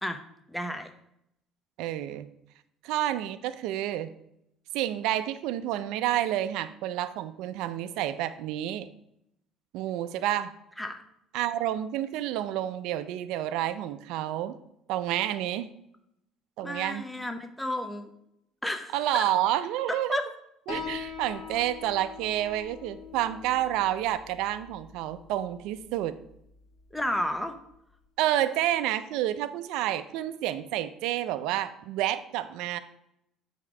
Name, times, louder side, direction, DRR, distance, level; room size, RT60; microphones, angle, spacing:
voice 1, 0.5-0.9 10.8-11.0 16.6-18.1 18.6-19.3 20.1-20.3 26.9-27.5, left 1 dB, 5° left, 6 dB, 0.6 m, -32 dB
voice 2, 1.8-2.3 2.8-4.1 4.7-8.9 9.7-10.5 11.3-14.6 14.9-15.7 16.6-17.0 18.9-20.2 20.7-26.2 28.2-32.8, right 12 dB, 80° right, 11 dB, 0.4 m, -29 dB
Piano, 20.7-27.7, left 5 dB, 65° left, 1.7 m, -43 dB
7.8 x 3.6 x 4.8 m, 0.77 s
cardioid pair, 120°, 0 cm